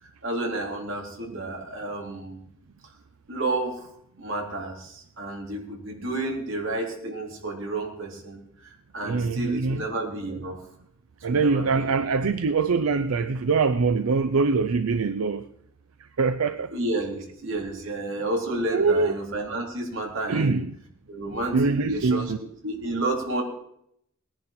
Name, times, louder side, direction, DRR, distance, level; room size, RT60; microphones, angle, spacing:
voice 1, 0.2-2.4 3.3-3.9 4.2-10.6 11.3-12.0 16.7-20.6 21.1-22.3 22.6-23.4, right 2 dB, 60° right, 3.5 m, -31 dB
voice 2, 9.0-9.8 11.2-15.4 16.2-16.7 18.7-19.1 20.3-20.7 21.5-22.4, right 4 dB, 85° right, 0.6 m, -23 dB
19.0 x 10.5 x 4.3 m
head